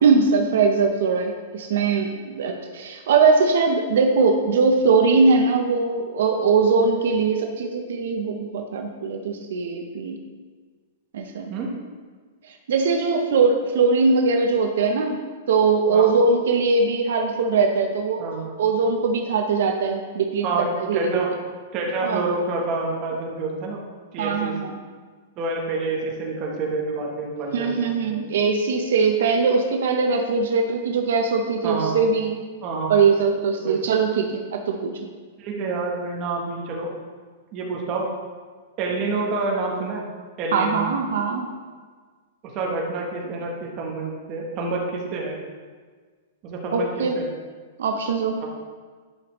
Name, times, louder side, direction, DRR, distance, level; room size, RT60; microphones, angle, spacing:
voice 1, 0.0-10.2 11.1-11.5 12.5-15.2 15.5-18.2 18.6-20.5 20.8-21.2 22.0-22.2 24.2-24.7 27.5-32.3 32.9-34.9 40.5-41.5 46.7-47.1 47.8-48.4, right 4 dB, 65° right, 3 dB, 0.6 m, -21 dB
voice 2, 18.2-18.5 20.4-21.3 21.7-23.8 24.1-24.5 25.4-28.2 31.6-32.0 32.6-32.9 33.6-33.8 35.4-36.9 37.5-38.0 38.8-40.0 40.4-40.8 42.5-45.4 46.4-47.3 48.4-48.5, right 3 dB, 25° right, -1 dB, 1.0 m, -28 dB
10.5 x 5.0 x 3.0 m, 1.5 s
supercardioid pair, 180°, 0 cm